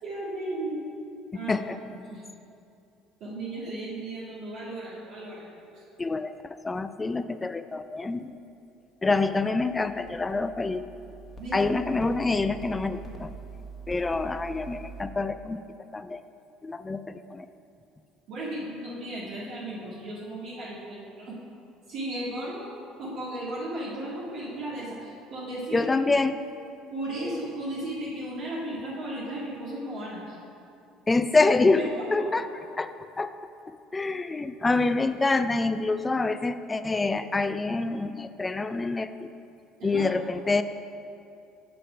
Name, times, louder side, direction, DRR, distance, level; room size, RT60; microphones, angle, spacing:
voice 1, 0.0-0.8 1.3-1.7 2.1-2.2 3.2-5.4 5.7-5.8 11.4-11.7 18.3-21.4 21.9-22.7 23.0-25.9 26.9-30.4 31.8-31.9 32.2-32.3 39.8-40.1, right 1 dB, 60° right, -7 dB, 1.7 m, -35 dB
voice 2, 6.0-8.4 9.0-10.8 11.5-13.3 13.9-15.6 15.9-16.2 16.6-17.5 25.7-26.4 31.1-31.8 32.1-32.5 32.8-33.3 33.9-39.3 39.8-40.6, left 3 dB, 20° left, 11 dB, 0.4 m, -26 dB
sound 1, 9.0-15.0, right 4 dB, 35° left, 1.2 m, -44 dB
6.8 x 5.2 x 5.7 m, 2.6 s
supercardioid pair, 90°, 0 cm